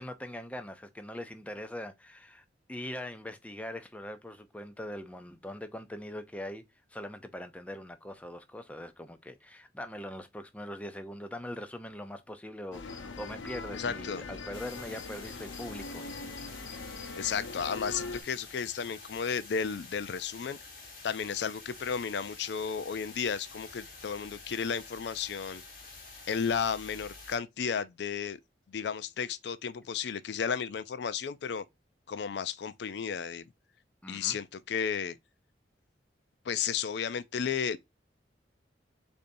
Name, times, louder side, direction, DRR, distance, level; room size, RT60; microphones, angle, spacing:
voice 1, 0.0-6.6 6.9-16.0 34.0-34.4, left 1 dB, 5° left, 0.5 m, -42 dB
sound 1, 12.7-18.2, left 3 dB, 90° left, 0.8 m, -41 dB
voice 2, 13.7-14.2 17.2-20.6 21.0-25.6 26.3-28.4 28.7-31.6 32.1-33.4 34.1-35.2 36.5-37.8, left 6 dB, 65° left, 0.4 m, -33 dB
sound 2, 14.5-27.4, left 3 dB, 50° left, 1.6 m, -49 dB
6.7 x 2.7 x 2.6 m
head